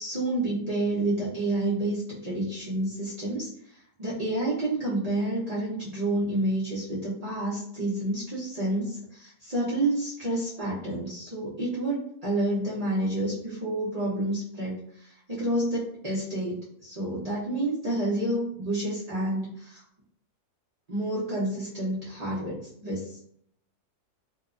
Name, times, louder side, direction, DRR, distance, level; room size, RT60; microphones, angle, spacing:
voice 1, 0.0-3.5 4.0-14.8 15.0-16.5 16.8-19.8 20.9-23.1, right 1 dB, 85° right, -9 dB, 0.3 m, -29 dB
2.8 x 2.1 x 2.4 m, 0.68 s
omnidirectional pair, 1.7 m